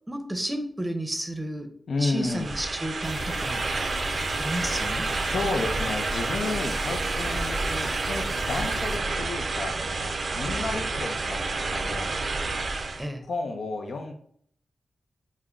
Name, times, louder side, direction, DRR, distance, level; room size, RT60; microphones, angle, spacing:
voice 1, 0.1-1.7 2.0-3.6 4.4-5.1 13.0-13.2, right 1 dB, 20° right, 6 dB, 0.6 m, -32 dB
voice 2, 1.9-2.5 5.2-12.1 13.2-14.1, left 3 dB, 80° left, 4 dB, 0.5 m, -32 dB
sound 1, 2.2-13.1, right 3 dB, 65° right, 0.4 m, -29 dB
sound 2, 3.0-9.0, left 1 dB, 20° left, 0.7 m, -37 dB
3.3 x 2.1 x 3.7 m, 0.63 s
cardioid pair, 50°, 0 cm